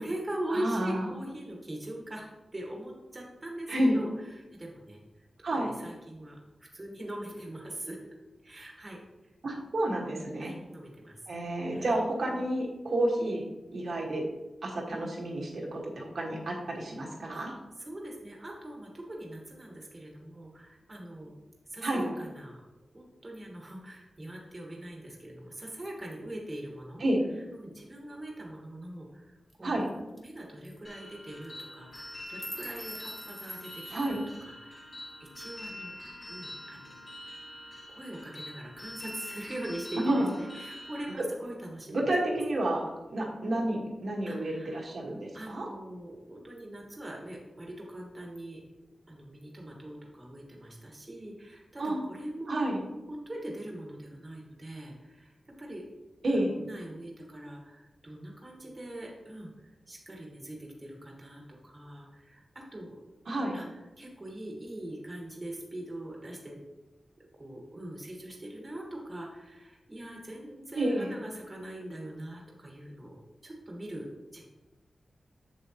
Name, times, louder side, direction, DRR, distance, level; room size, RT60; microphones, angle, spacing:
voice 1, 0.0-8.0 8.4-9.3 10.4-11.2 11.7-12.0 17.3-17.5 17.8-21.3 21.7-22.6 22.9-27.1 27.4-29.8 30.2-33.9 34.4-34.9 35.2-36.0 36.3-37.3 37.9-42.1 44.3-44.8 45.3-48.6 49.1-52.7 53.1-55.9 56.3-63.0 63.5-66.6 67.2-73.2 73.4-74.4, right 1 dB, 25° right, -1 dB, 1.4 m, -42 dB
voice 2, 0.5-1.0 3.7-4.0 5.4-5.7 9.4-10.5 11.3-13.4 13.7-14.2 14.6-17.5 21.8-22.0 27.0-27.2 29.6-29.9 33.9-34.2 40.0-40.3 41.9-45.7 51.8-52.0 52.5-52.8 56.2-56.5 63.3-63.6 70.7-71.1, right 1 dB, 60° right, -2 dB, 1.4 m, -30 dB
sound 1, 29.5-29.6 29.9-30.0 30.2-30.4 30.6-30.8 31.4-31.6 31.9-34.3, equal, ahead, 0.9 m, -44 dB
sound 2, 30.8-41.1, left 1 dB, 45° left, 2.0 m, -45 dB
7.3 x 7.3 x 2.9 m, 1.1 s
wide cardioid pair, 155°, 0 cm